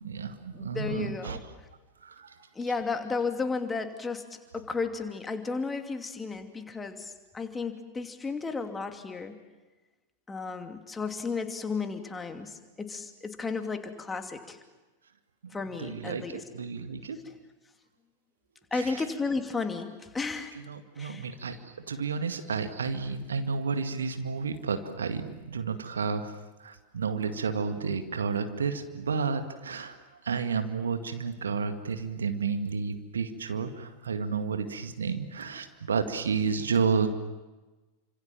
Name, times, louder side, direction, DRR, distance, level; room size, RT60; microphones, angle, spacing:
voice 1, 0.0-1.4 2.0-2.4 15.8-17.2 18.7-19.0 20.5-26.3 26.6-30.0 30.2-37.1, right 5 dB, 70° right, 8 dB, 2.1 m, -31 dB
voice 2, 0.5-1.4 2.5-9.4 10.3-14.6 15.5-16.4 18.7-20.5 21.0-21.3, left 4 dB, 15° left, 6 dB, 2.7 m, -33 dB
29.5 x 26.5 x 7.5 m, 1.2 s
figure-of-eight pair, 90°, 0 cm